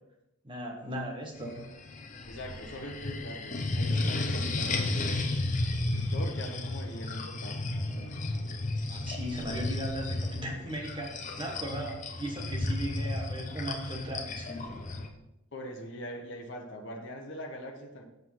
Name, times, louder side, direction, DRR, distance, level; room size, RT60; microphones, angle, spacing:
voice 1, 0.4-1.7 8.9-14.7, right 1 dB, 20° right, 1 dB, 1.5 m, -37 dB
sound 1, 1.4-15.1, left 2 dB, 35° left, 0.8 m, -33 dB
voice 2, 2.2-5.2 5.9-7.6 15.5-18.0, equal, 55° left, 0 dB, 1.1 m, -42 dB
8.0 x 5.5 x 5.6 m, 0.89 s
head